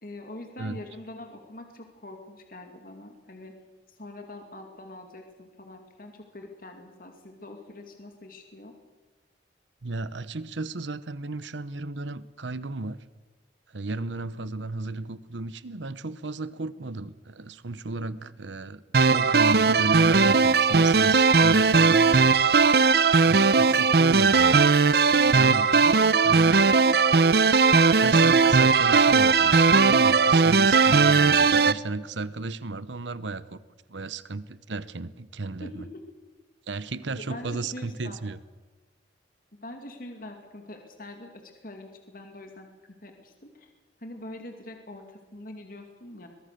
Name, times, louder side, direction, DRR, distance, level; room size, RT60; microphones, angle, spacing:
voice 1, 0.0-3.5 3.9-8.7 14.4-14.5 26.3-26.6 35.6-36.0 37.3-38.2 39.5-42.7 43.0-43.7 44.0-46.3, left 1 dB, 50° left, 4 dB, 2.5 m, -43 dB
voice 2, 9.8-13.0 13.7-22.4 23.2-24.6 25.2-26.7 28.0-33.6 33.9-35.9 36.7-38.4, right 2 dB, 85° right, 16 dB, 0.9 m, -34 dB
sound 1, 18.9-31.7, right 4 dB, 55° right, 0.7 m, -18 dB
23.0 x 22.0 x 6.7 m, 1.3 s
head